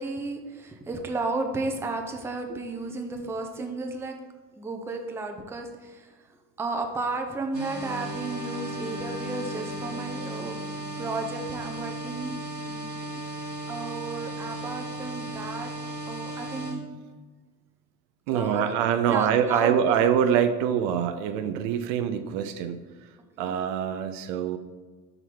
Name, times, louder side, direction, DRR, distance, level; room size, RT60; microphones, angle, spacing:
voice 1, 0.0-4.1 4.6-6.3 6.6-12.4 12.6-12.9 13.7-15.7 16.0-16.8 18.3-18.7 19.1-20.0 23.4-23.6, right 3 dB, 5° right, 4 dB, 0.5 m, -33 dB
sound 1, 7.5-16.7, right 1 dB, 90° right, 1.2 m, -36 dB
Bowed string instrument, 7.7-11.7, left 3 dB, 40° left, 1.5 m, -42 dB
voice 2, 18.3-23.1 23.4-24.6, right 8 dB, 50° right, 10 dB, 0.5 m, -25 dB
5.5 x 3.9 x 4.4 m, 1.4 s
figure-of-eight pair, 65°, 49 cm